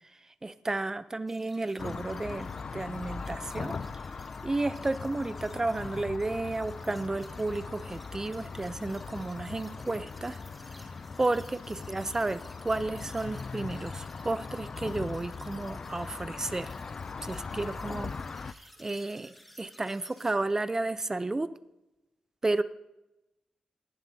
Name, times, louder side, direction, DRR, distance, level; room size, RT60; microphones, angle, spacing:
voice 1, 0.4-3.8 4.4-10.4 11.2-16.7 17.2-18.1 18.4-21.5 22.4-22.6, right 2 dB, 20° right, 13 dB, 0.6 m, -32 dB
sound 1, 1.3-20.3, equal, ahead, 1.4 m, -56 dB
sound 2, 1.8-18.5, left 4 dB, 45° left, 0.4 m, -40 dB
17.5 x 11.5 x 2.8 m, 0.93 s
wide cardioid pair, 110°, 2 cm